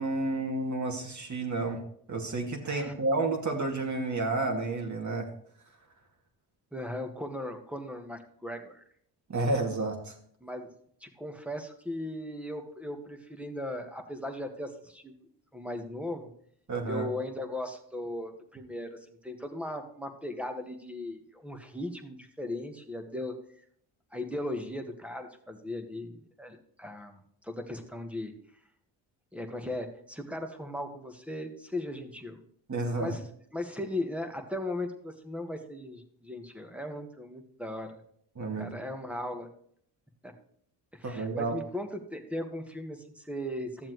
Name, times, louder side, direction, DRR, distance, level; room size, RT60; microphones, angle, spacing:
voice 1, 0.0-1.8 2.1-5.3 9.3-10.1 16.7-17.1 32.7-33.2 38.4-38.7 41.0-41.5, right 2 dB, 40° right, 2 dB, 2.4 m, -30 dB
voice 2, 6.7-8.8 10.4-10.7 11.0-15.1 15.5-16.3 16.9-23.3 24.1-28.3 29.3-32.4 33.0-33.2 33.5-38.0 38.6-39.5 40.2-40.3 40.9-43.9, left 1 dB, 5° right, 3 dB, 1.6 m, -37 dB
12.5 x 7.3 x 3.2 m, 0.63 s
supercardioid pair, 55°, 44 cm